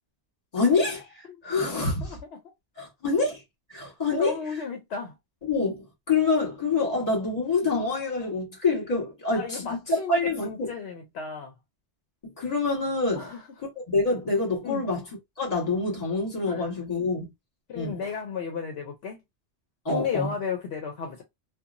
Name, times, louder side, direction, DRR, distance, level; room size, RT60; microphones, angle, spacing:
voice 1, 0.5-1.1 1.4-2.2 2.8-3.4 3.7-4.3 5.4-10.7 12.2-13.3 13.9-15.0 15.4-17.3 17.7-18.0 19.8-20.3, left 3 dB, 35° left, 1.5 m, -26 dB
voice 2, 4.1-5.1 9.3-11.5 13.1-13.4 14.6-14.8 16.5-16.7 17.7-19.2 19.9-21.2, left 6 dB, 70° left, 0.9 m, -33 dB
2.8 x 2.4 x 2.5 m
omnidirectional pair, 1.1 m